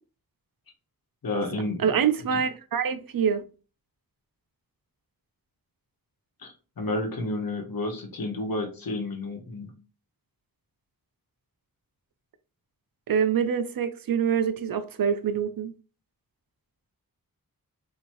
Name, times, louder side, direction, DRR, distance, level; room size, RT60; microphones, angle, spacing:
voice 1, 1.2-1.9 2.3-2.4 6.4-9.7, left 2 dB, 70° left, 1.1 m, -31 dB
voice 2, 1.8-3.4 13.1-15.7, right 7 dB, 70° right, 0.6 m, -25 dB
4.3 x 2.9 x 3.0 m
wide cardioid pair, 75°, 36 cm